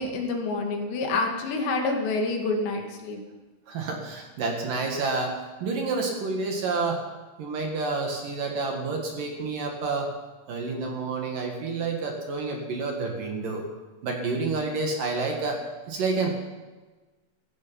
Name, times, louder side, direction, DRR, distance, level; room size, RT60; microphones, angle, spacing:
voice 1, 0.0-3.2, left 3 dB, 75° left, 2 dB, 4.1 m, -27 dB
voice 2, 3.7-7.0 7.4-10.1 10.5-13.6 14.0-15.6 15.9-16.3, right 3 dB, 60° right, 2 dB, 2.9 m, -29 dB
16.0 x 15.5 x 5.7 m, 1.3 s
omnidirectional pair, 5.2 m